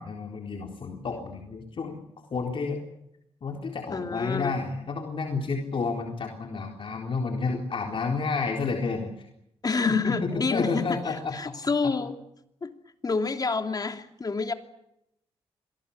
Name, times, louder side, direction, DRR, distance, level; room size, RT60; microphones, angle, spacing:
voice 1, 0.0-2.0 2.3-2.8 3.4-9.1 9.9-11.5 11.8-11.9, left 4 dB, 55° left, 2 dB, 4.0 m, -30 dB
voice 2, 3.9-4.5 9.6-12.2 12.6-12.7 13.0-14.5, left 4 dB, 40° left, 7 dB, 2.9 m, -28 dB
26.5 x 19.0 x 8.8 m, 0.80 s
cardioid pair, 80°, 10 cm